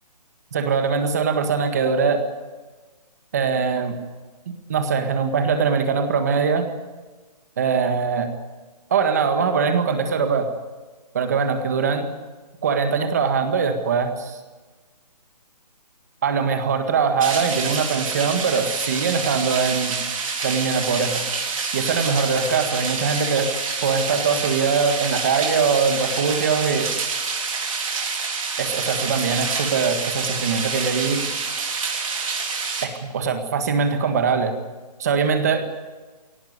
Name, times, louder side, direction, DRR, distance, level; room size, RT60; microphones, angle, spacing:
voice 1, 0.5-2.2 3.3-4.0 4.7-6.7 7.6-8.3 8.9-10.5 11.1-12.0 12.6-14.4 16.2-20.0 20.4-21.2 21.7-23.5 23.8-26.9 28.6-31.3 32.8-34.6 35.0-35.7, right 5 dB, 25° right, 7 dB, 1.8 m, -22 dB
sound 1, 17.2-32.9, right 4 dB, 55° right, 4.1 m, -27 dB
22.0 x 18.5 x 9.5 m, 1.3 s
hypercardioid pair, 180°, 21 cm